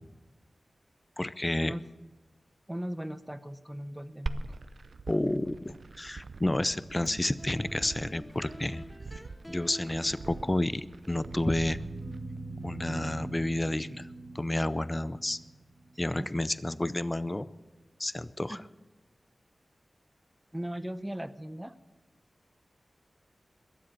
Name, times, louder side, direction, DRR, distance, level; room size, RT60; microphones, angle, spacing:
voice 1, 1.2-1.7 5.1-8.8 9.5-11.8 12.6-14.1 14.3-15.4 16.0-17.5 18.0-18.6, left 1 dB, 20° left, 16 dB, 0.6 m, -30 dB
voice 2, 2.7-4.5 16.0-16.3 18.5-18.6 20.5-21.8, equal, 10° right, 13 dB, 0.8 m, -38 dB
Glass, 4.3-12.2, right 3 dB, 70° right, 0.6 m, -42 dB
sound 1, 6.9-14.0, equal, 5° left, 1.9 m, -47 dB
sound 2, 11.2-16.3, right 2 dB, 55° right, 1.0 m, -43 dB
21.5 x 7.7 x 7.4 m, 1.2 s
wide cardioid pair, 75°, 0 cm